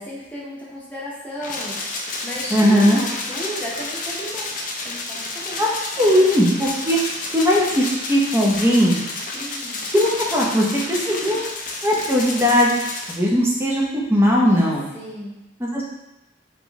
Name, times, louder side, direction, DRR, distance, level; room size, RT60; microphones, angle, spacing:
voice 1, 0.0-1.8 2.2-4.5 4.8-5.7 5.9-6.3 9.3-9.8 11.3-11.4 14.9-15.3, equal, 10° left, -7 dB, 1.0 m, -34 dB
sound 1, 1.4-13.2, left 2 dB, 45° left, 0.6 m, -30 dB
voice 2, 2.5-3.0 5.6-5.7 6.0-7.0 7.3-9.0 9.9-11.4 11.8-12.7 13.1-14.9 15.6-15.8, equal, 15° right, -3 dB, 0.7 m, -18 dB
3.6 x 3.2 x 3.6 m, 0.97 s
head